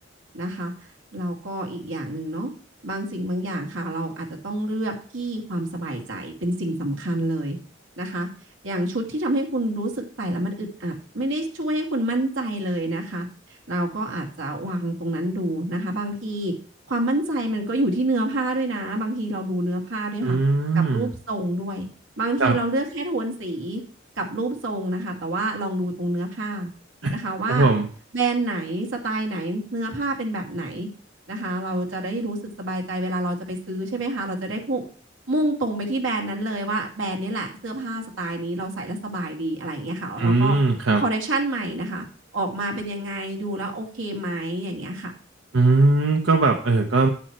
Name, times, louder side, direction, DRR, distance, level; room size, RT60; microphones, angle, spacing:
voice 1, 0.3-0.7 1.1-2.5 2.8-7.6 8.0-8.3 8.6-13.3 13.7-16.5 16.9-20.4 20.7-21.9 22.2-23.8 24.2-26.7 27.1-27.7 28.1-30.9 31.3-34.8 35.3-40.6 41.0-42.1 42.3-45.1, right 1 dB, 85° right, 0 dB, 2.3 m, -27 dB
voice 2, 20.2-21.1 22.4-22.6 27.0-27.2 27.5-27.9 40.2-41.0 45.5-47.1, right 3 dB, 70° right, 3 dB, 0.9 m, -19 dB
9.2 x 8.5 x 3.1 m, 0.43 s
head